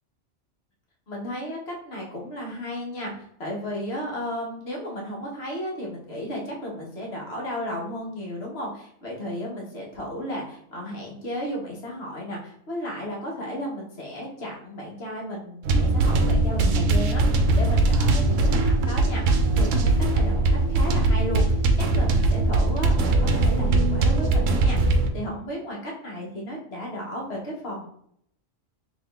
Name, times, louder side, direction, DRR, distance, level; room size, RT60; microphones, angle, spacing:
voice 1, 1.1-27.9, equal, 55° left, -2 dB, 1.5 m, -34 dB
sound 1, 15.6-25.1, right 2 dB, 80° right, 1.0 m, -21 dB
3.5 x 3.1 x 3.4 m, 0.67 s
omnidirectional pair, 1.3 m